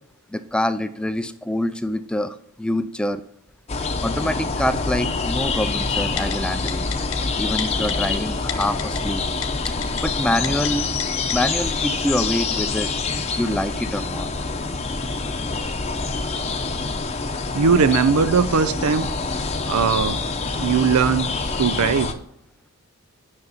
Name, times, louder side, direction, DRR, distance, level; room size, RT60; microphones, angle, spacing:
voice 1, 0.3-3.2 4.0-6.9 7.4-9.2 9.7-9.8 10.0-10.9 11.3-12.9 13.4-14.3, left 1 dB, 5° left, 11 dB, 0.3 m, -25 dB
sound 1, 3.7-22.1, left 4 dB, 30° left, 0.7 m, -26 dB
Typing, 6.2-6.3 6.7-7.2 7.6-7.9 8.5-9.0 9.4-10.0 10.4-10.7 11.0-11.1 11.3-11.4, left 10 dB, 65° left, 1.0 m, -29 dB
voice 2, 17.5-19.1 19.7-20.2 20.5-21.3 21.6-22.2, right 5 dB, 85° right, 15 dB, 0.5 m, -19 dB
9.6 x 5.9 x 4.0 m, 0.77 s
head